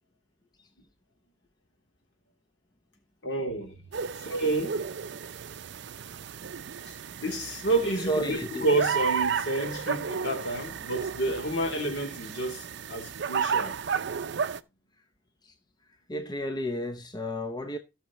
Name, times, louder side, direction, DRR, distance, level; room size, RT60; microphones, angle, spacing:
voice 1, 3.2-3.8 4.2-4.9 7.2-13.8, right 2 dB, 60° left, 3.2 m, -29 dB
sound 1, 3.9-14.6, right 7 dB, 60° right, 0.5 m, -33 dB
voice 2, 8.1-8.6 15.4-15.6 15.9-17.8, equal, 20° left, 0.7 m, -32 dB
18.0 x 6.4 x 3.1 m
head